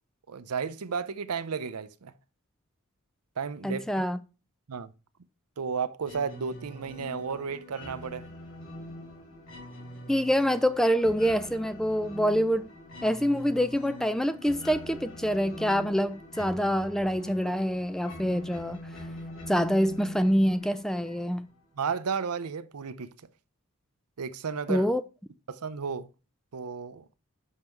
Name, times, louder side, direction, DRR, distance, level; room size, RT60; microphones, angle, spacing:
voice 1, 0.3-2.1 3.4-3.8 4.7-4.9 5.6-8.3 21.8-23.1 24.2-24.9 25.5-26.1 26.5-27.1, right 6 dB, 90° right, 0.6 m, -33 dB
voice 2, 3.6-4.2 10.1-12.7 13.0-18.8 19.5-21.5 24.7-25.0, equal, ahead, 0.3 m, -26 dB
sound 1, 6.0-21.5, left 1 dB, 60° left, 2.8 m, -43 dB
6.5 x 5.5 x 4.5 m
head